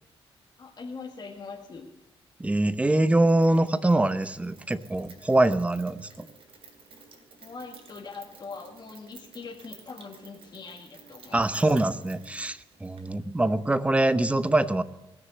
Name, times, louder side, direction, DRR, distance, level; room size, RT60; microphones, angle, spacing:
voice 1, 0.6-1.9 7.4-11.7, left 4 dB, 40° left, -1 dB, 1.8 m, -42 dB
voice 2, 2.4-6.3 11.3-14.8, right 2 dB, 10° right, 13 dB, 0.8 m, -24 dB
Rain, 3.2-13.1, right 5 dB, 65° right, 2.9 m, -53 dB
19.5 x 6.6 x 8.2 m, 0.97 s
cardioid pair, 95°, 10 cm